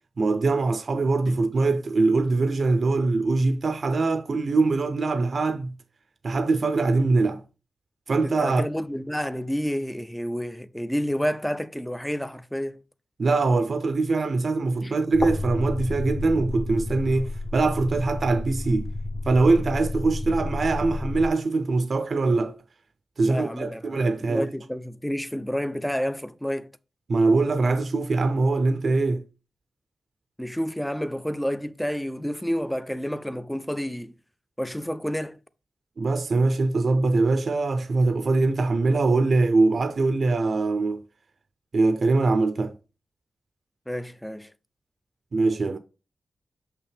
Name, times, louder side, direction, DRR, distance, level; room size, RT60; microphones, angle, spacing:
voice 1, 0.2-5.7 6.2-7.4 8.1-8.6 13.2-18.9 19.3-22.5 23.2-24.5 27.1-29.2 36.0-41.0 41.7-42.7 45.3-45.8, right 3 dB, 55° right, 0.5 m, -22 dB
voice 2, 8.4-12.8 14.8-14.9 23.2-24.0 24.3-26.7 30.4-34.1 34.6-35.4 43.9-44.5, equal, 5° left, 0.4 m, -29 dB
sound 1, 15.1-21.3, left 2 dB, 45° left, 0.9 m, -31 dB
6.5 x 5.7 x 3.4 m
wide cardioid pair, 125°, 0 cm